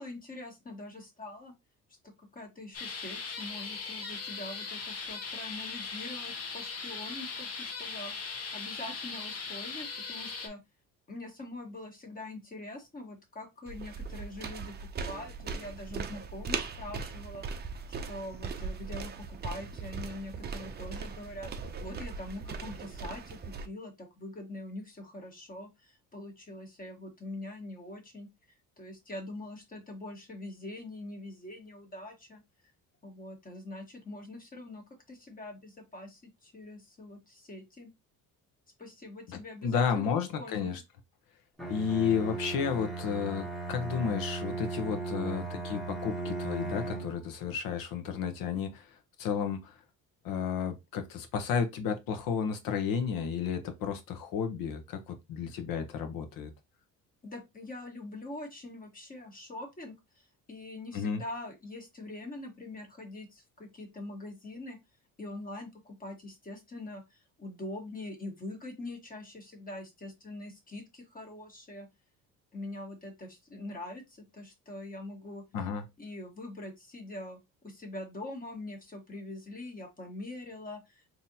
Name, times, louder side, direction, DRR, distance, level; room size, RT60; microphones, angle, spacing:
voice 1, 0.0-1.5 2.0-8.1 8.5-10.6 11.1-14.7 15.0-17.5 18.1-21.5 21.8-28.3 28.8-32.4 33.0-37.9 38.8-40.8 57.2-64.8 65.2-71.9 72.5-75.4 76.0-81.0, left 2 dB, 25° left, 1.3 m, -43 dB
sound 1, 2.7-10.5, left 4 dB, 45° left, 0.9 m, -39 dB
sound 2, 13.7-23.7, right 5 dB, 30° right, 0.5 m, -39 dB
voice 2, 39.3-40.8 41.7-49.8 50.2-56.5 60.9-61.2 75.5-75.8, left 7 dB, 75° left, 1.0 m, -32 dB
Bowed string instrument, 41.6-47.3, right 3 dB, ahead, 0.9 m, -37 dB
3.9 x 2.8 x 2.7 m
cardioid pair, 120°, 35 cm